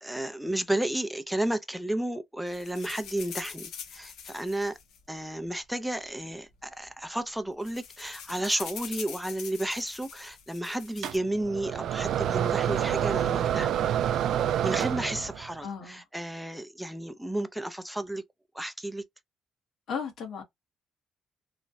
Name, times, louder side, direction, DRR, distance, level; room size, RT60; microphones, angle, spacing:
voice 1, 0.0-4.8 5.1-13.7 14.6-18.2 18.5-19.0, right 1 dB, 5° right, 0.5 m, -32 dB
sound 1, 2.5-5.7 6.5-6.6 6.8-7.0 7.3-11.2, left 7 dB, 85° left, 0.8 m, -43 dB
sound 2, 11.0-15.5, right 10 dB, 75° right, 0.3 m, -28 dB
voice 2, 15.6-16.0 19.9-20.4, left 6 dB, 70° left, 1.2 m, -35 dB
3.1 x 2.2 x 2.7 m
cardioid pair, 90°, 0 cm